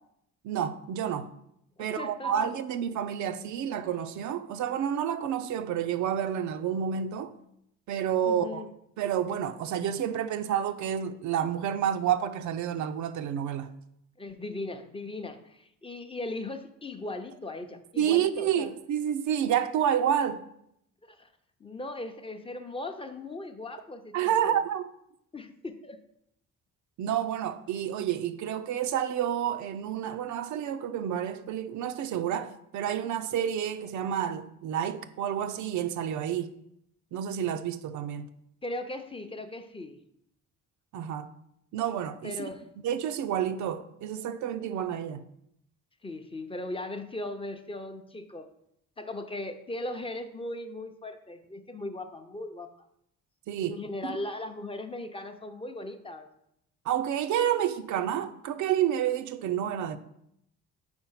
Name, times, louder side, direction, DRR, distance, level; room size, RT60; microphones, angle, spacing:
voice 1, 0.4-1.3 1.8-7.3 7.9-8.6 9.0-13.7 18.0-20.4 24.1-24.9 27.0-36.5 37.1-38.3 40.9-41.3 41.7-42.5 42.8-45.3 53.5-53.8 54.1-54.2 56.9-60.0, right 9 dB, 70° right, 0.5 m, -29 dB
voice 2, 1.8-2.3 8.3-8.7 14.2-18.7 21.1-21.3 21.6-24.2 24.4-24.6 25.3-26.0 38.6-40.0 42.2-42.6 46.0-48.5 49.0-52.7 53.7-56.3, left 2 dB, 20° left, 0.6 m, -38 dB
4.3 x 4.3 x 5.6 m
cardioid pair, 90°, 30 cm